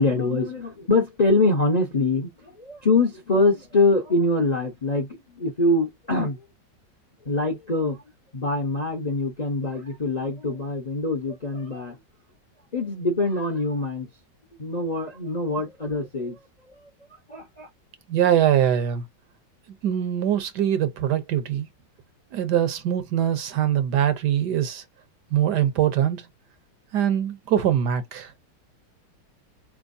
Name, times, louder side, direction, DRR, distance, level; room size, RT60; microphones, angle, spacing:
voice 1, 0.0-6.4 7.2-8.0 8.3-12.0 12.7-14.1 14.6-16.4 17.3-17.7, left 2 dB, 35° left, 0.7 m, -24 dB
voice 2, 18.1-19.0 19.8-21.7 22.3-24.8 25.3-26.3 26.9-28.3, right 10 dB, 70° right, 1.3 m, -22 dB
4.4 x 3.5 x 2.6 m
omnidirectional pair, 2.0 m